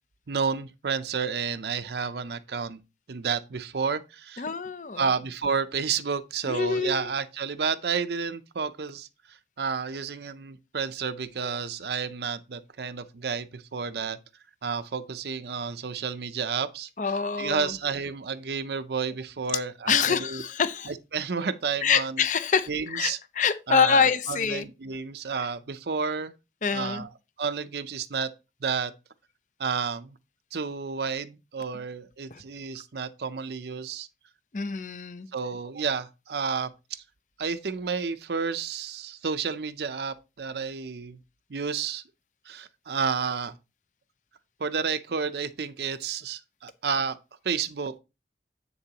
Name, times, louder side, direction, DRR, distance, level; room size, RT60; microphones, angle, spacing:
voice 1, 0.3-2.8 3.1-4.4 5.0-9.1 9.6-14.2 14.6-16.9 17.4-20.4 20.9-22.2 22.7-23.2 23.7-26.3 26.7-27.1 27.4-28.3 28.6-28.9 29.6-30.1 30.5-34.1 35.3-37.0 37.4-41.2 41.5-42.0 42.5-43.6 44.6-47.2 47.4-47.9, right 5 dB, 70° right, 0.6 m, -31 dB
voice 2, 4.4-5.1 6.5-7.1 17.0-17.8 19.9-20.9 21.8-24.7 25.4-25.5 26.6-27.0 32.3-32.4 34.5-35.3, left 6 dB, 45° left, 0.6 m, -26 dB
8.4 x 6.7 x 2.9 m
head